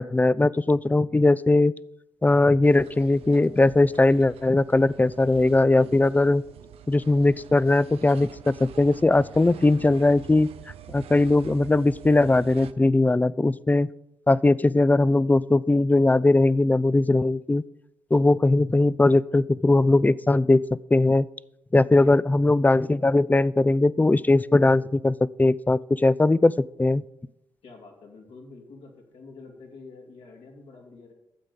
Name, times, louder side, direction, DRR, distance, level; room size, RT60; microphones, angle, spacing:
voice 1, 0.0-1.7 2.2-6.4 6.9-10.5 10.9-13.9 14.3-17.6 18.1-20.6 20.9-21.3 21.7-26.5 26.8-27.0, left 2 dB, 15° left, 20 dB, 0.4 m, -20 dB
sound 1, 2.6-12.7, right 10 dB, 75° right, 0.6 m, -46 dB
voice 2, 21.8-22.2 27.6-31.1, left 3 dB, 75° left, 1 dB, 2.7 m, -46 dB
12.5 x 8.1 x 5.4 m, 0.84 s
supercardioid pair, 45°, 10 cm